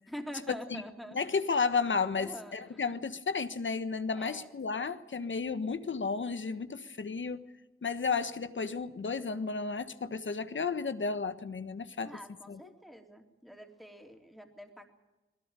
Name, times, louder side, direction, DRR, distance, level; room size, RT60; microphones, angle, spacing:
voice 1, 0.1-1.4 2.2-2.8 4.1-4.5 12.0-14.9, equal, ahead, 3.3 m, -46 dB
voice 2, 1.1-7.4 7.8-12.1 12.5-12.6, left 5 dB, 65° left, 1.4 m, -33 dB
21.0 x 17.5 x 9.0 m
cardioid pair, 55°, 21 cm